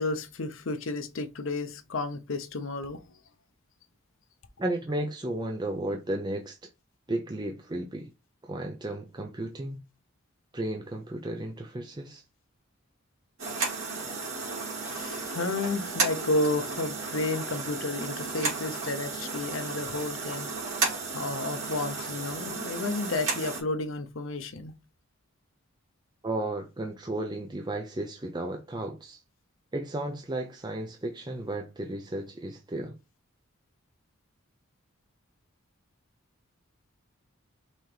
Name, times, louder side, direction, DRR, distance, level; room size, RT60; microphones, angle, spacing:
voice 1, 0.0-3.0 14.8-20.8 21.1-24.7, left 2 dB, 70° left, 0.7 m, -32 dB
voice 2, 4.6-6.6 7.1-8.1 8.4-9.8 10.5-12.2 14.0-14.1 26.2-29.2 29.7-33.0, right 1 dB, 20° right, 0.5 m, -34 dB
sound 1, 13.4-23.6, right 4 dB, 75° right, 2.4 m, -33 dB
5.6 x 2.9 x 3.2 m
head